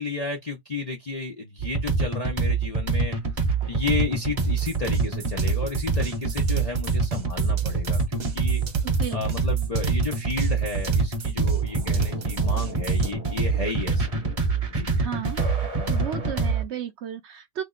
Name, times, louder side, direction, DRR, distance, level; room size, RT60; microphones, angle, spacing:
voice 1, 0.0-3.2 3.7-8.6 9.1-14.1 14.7-14.9, left 3 dB, 70° left, 0.3 m, -32 dB
sound 1, 1.6-16.6, right 4 dB, 35° right, 0.6 m, -25 dB
sound 2, 4.4-13.1, right 6 dB, 60° right, 1.3 m, -35 dB
voice 2, 8.8-9.2 15.0-15.4 15.9-17.6, right 10 dB, 75° right, 0.6 m, -33 dB
3.4 x 2.0 x 3.7 m
omnidirectional pair, 1.8 m